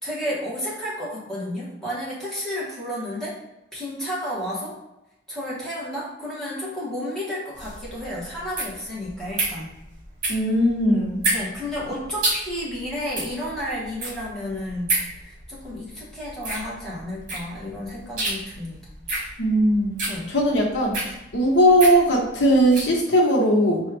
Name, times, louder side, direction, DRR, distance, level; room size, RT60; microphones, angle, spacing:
voice 1, 0.0-3.4 3.7-4.8 5.3-9.7 11.3-18.8 20.1-20.3, left 1 dB, 5° left, -7 dB, 1.2 m, -32 dB
sound 1, 7.5-23.0, right 2 dB, 45° right, 1.1 m, -30 dB
voice 2, 10.3-11.2 19.4-19.9 20.3-21.0 21.3-23.8, equal, 85° left, -2 dB, 1.0 m, -19 dB
4.1 x 2.3 x 3.3 m, 0.91 s
head